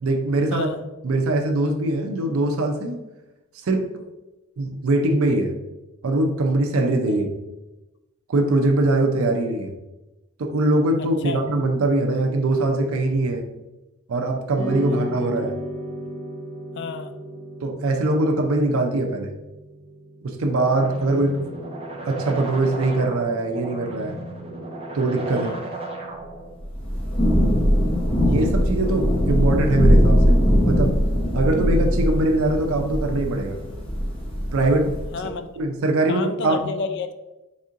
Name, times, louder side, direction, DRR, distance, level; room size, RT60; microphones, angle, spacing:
voice 1, 0.0-0.7 1.0-3.0 3.6-3.8 4.6-5.5 6.0-7.3 8.3-9.7 10.4-13.5 14.1-15.6 17.6-19.3 20.2-21.4 22.0-24.2 24.9-25.5 28.2-30.4 30.7-30.9 31.3-33.6 34.5-34.9 35.6-36.6, right 2 dB, 80° right, 3 dB, 0.5 m, -22 dB
sound 1, 14.5-23.1, equal, 5° right, 1.3 m, -35 dB
voice 2, 16.7-17.1 25.3-25.6 35.1-35.5 36.1-37.1, left 5 dB, 55° left, 10 dB, 0.3 m, -30 dB
sound 2, 20.5-26.5, right 2 dB, 30° right, 0.5 m, -35 dB
Thunder / Rain, 26.6-35.2, equal, 25° left, 0.8 m, -20 dB
4.2 x 3.6 x 2.4 m, 1.0 s
head